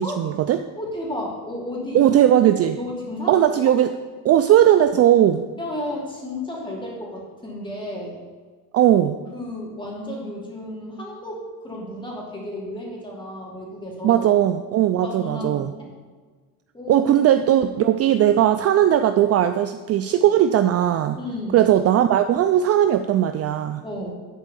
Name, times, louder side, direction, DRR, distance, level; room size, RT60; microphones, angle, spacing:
voice 1, 0.0-0.6 1.9-2.8 3.3-3.9 4.2-5.4 8.7-9.2 14.0-15.7 16.9-21.2 21.5-23.8, right 11 dB, 40° right, 9 dB, 0.4 m, -18 dB
voice 2, 0.8-2.0 2.8-3.5 5.6-8.2 9.3-14.2 15.0-15.9 16.7-17.1 21.2-21.7 23.8-24.1, left 1 dB, 15° left, -3 dB, 2.8 m, -32 dB
11.0 x 4.5 x 6.9 m, 1.5 s
cardioid pair, 140°, 38 cm